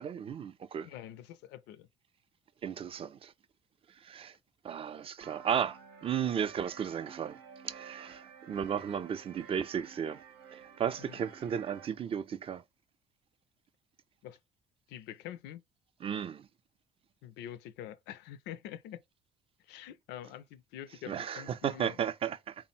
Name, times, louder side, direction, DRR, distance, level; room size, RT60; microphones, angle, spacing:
voice 1, 0.0-0.9 2.6-3.3 4.0-4.3 4.6-7.4 7.6-10.2 10.5-12.6 16.0-16.4 21.1-22.5, right 8 dB, 35° right, 0.3 m, -34 dB
voice 2, 0.8-1.9 11.0-11.2 14.2-14.4 14.9-15.6 17.2-19.0 19.6-22.0, left 11 dB, 90° left, 0.4 m, -46 dB
sound 1, 5.2-11.9, right 7 dB, 90° right, 0.8 m, -52 dB
3.7 x 2.0 x 4.2 m
cardioid pair, 110°, 17 cm